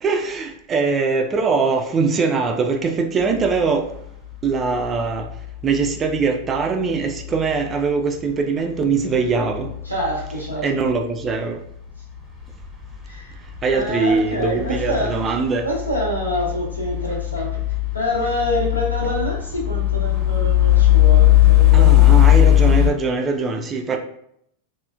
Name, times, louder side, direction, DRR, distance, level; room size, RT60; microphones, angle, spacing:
voice 1, 0.0-3.9 4.4-5.3 5.6-9.7 10.6-11.6 13.6-15.7 21.7-24.0, right 4 dB, 25° right, 0.3 m, -22 dB
sound 1, 3.4-3.6 4.3-4.4 4.9-5.5 5.7-5.9 7.2-7.6 9.1-10.8 11.3-11.4 12.4-12.9 13.5-13.9 14.2-22.9, left 14 dB, 5° left, 0.8 m, -18 dB
voice 2, 9.8-10.6 13.1-13.3 13.7-15.2 15.6-17.6 17.9-22.1, equal, 85° left, 0.8 m, -26 dB
3.1 x 2.1 x 2.4 m
figure-of-eight pair, 90°, 0 cm